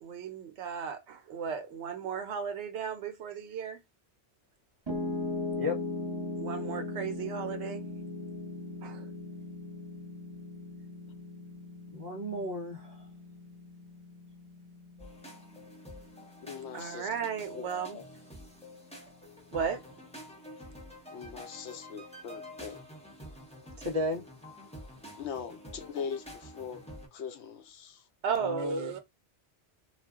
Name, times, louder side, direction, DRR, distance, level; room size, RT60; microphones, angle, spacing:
voice 1, 0.0-3.8 6.4-7.8 8.8-9.1 16.7-18.0 19.5-19.8 28.2-29.0, right 6 dB, 75° right, 0.9 m, -35 dB
Piano, 4.9-17.0, left 2 dB, 25° right, 1.1 m, -39 dB
voice 2, 11.9-13.1 23.8-24.2 28.4-29.0, left 1 dB, 45° right, 0.7 m, -34 dB
sound 1, 15.0-27.1, left 1 dB, 5° left, 0.7 m, -48 dB
voice 3, 16.4-17.1 17.5-17.7 17.9-18.0 21.1-22.8 25.2-26.8 27.1-28.0, left 7 dB, 75° left, 0.9 m, -41 dB
2.4 x 2.2 x 3.5 m
omnidirectional pair, 1.2 m